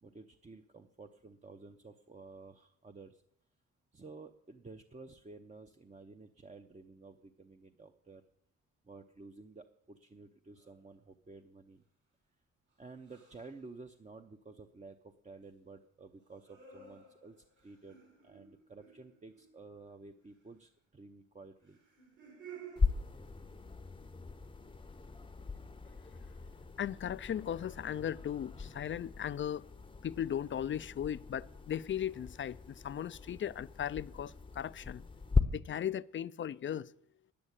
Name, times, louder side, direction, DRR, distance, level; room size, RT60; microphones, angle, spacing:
voice 1, 0.0-3.2 3.9-8.2 8.8-11.8 12.8-18.0 18.2-21.8, right 3 dB, 20° right, 0.7 m, -53 dB
sound 1, 10.6-10.9 13.0-13.6 16.2-19.8 21.6-22.8, right 6 dB, 70° right, 6.3 m, -54 dB
sound 2, 22.8-35.4, left 4 dB, 15° left, 0.8 m, -38 dB
voice 2, 26.8-29.6 30.0-35.0 35.5-36.9, left 9 dB, 40° left, 0.4 m, -37 dB
9.8 x 8.7 x 8.1 m
cardioid pair, 75°, 33 cm